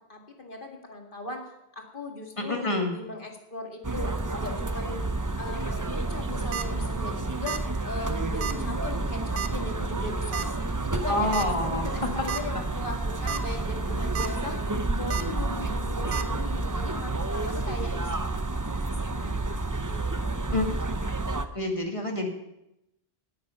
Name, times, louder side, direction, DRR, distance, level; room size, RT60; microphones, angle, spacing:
voice 1, 0.0-5.0 5.3-10.5 10.8-20.4, left 2 dB, 55° left, 2 dB, 2.3 m, -39 dB
voice 2, 2.5-2.9 11.1-12.1 20.5-20.6 21.5-22.3, left 2 dB, 30° left, 3 dB, 2.2 m, -27 dB
sound 1, 3.8-21.4, right 2 dB, 20° right, 0.7 m, -30 dB
sound 2, 6.3-6.6 7.5-7.7 8.0-8.1 8.4-8.5 9.4-9.6 10.3-10.5 11.3-11.5 11.9-12.0 12.3-12.4 13.1-13.4 13.8-14.3 15.1-15.2 16.1-16.2, right 8 dB, 90° right, 1.1 m, -32 dB
18.0 x 9.1 x 5.7 m, 0.86 s
omnidirectional pair, 1.1 m